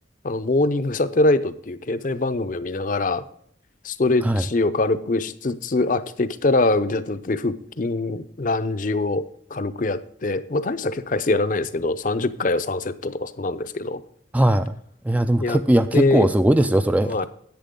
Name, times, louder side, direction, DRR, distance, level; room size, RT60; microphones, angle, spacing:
voice 1, 0.2-3.2 3.8-9.3 9.5-14.0 15.4-15.6 15.9-16.3 17.0-17.3, left 2 dB, 45° left, 11 dB, 0.6 m, -23 dB
voice 2, 14.3-14.7 15.1-17.3, right 1 dB, 10° right, 9 dB, 0.3 m, -19 dB
10.5 x 8.6 x 3.7 m, 0.68 s
head